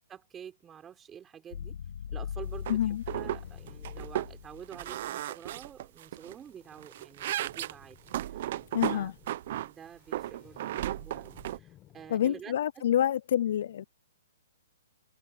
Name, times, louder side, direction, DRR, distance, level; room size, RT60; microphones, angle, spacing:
voice 1, 0.1-1.8 2.1-8.0 8.3-8.6 8.9-9.1 9.6-12.8, right 8 dB, 10° right, 5.3 m, -48 dB
sound 1, 1.5-4.9, left 8 dB, 65° left, 4.3 m, -40 dB
voice 2, 2.7-3.0 8.7-9.1 12.1-13.8, left 10 dB, 45° left, 0.3 m, -27 dB
sound 2, 2.7-2.8 3.1-3.4 3.7-4.3 4.7-6.3 6.7-9.7 10.1-11.6, right 13 dB, 35° right, 0.6 m, -35 dB
Boat Water vehicle, 3.1-12.2, left 13 dB, 15° left, 5.6 m, -60 dB
hypercardioid pair, 175°, 0 cm